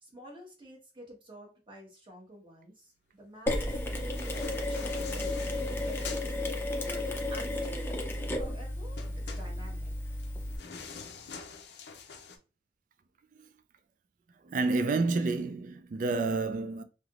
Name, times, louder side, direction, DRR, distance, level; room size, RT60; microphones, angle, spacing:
voice 1, 0.0-3.6 3.9-4.1 4.4-6.4 6.8-9.9, equal, 30° right, 1.1 m, -49 dB
Mechanisms, 3.5-10.6, left 1 dB, 10° left, 0.5 m, -33 dB
sound 1, 3.9-6.3 9.0-12.4, left 5 dB, 65° left, 0.5 m, -45 dB
voice 2, 14.4-16.8, right 3 dB, 45° right, 0.3 m, -29 dB
3.3 x 2.8 x 2.4 m
head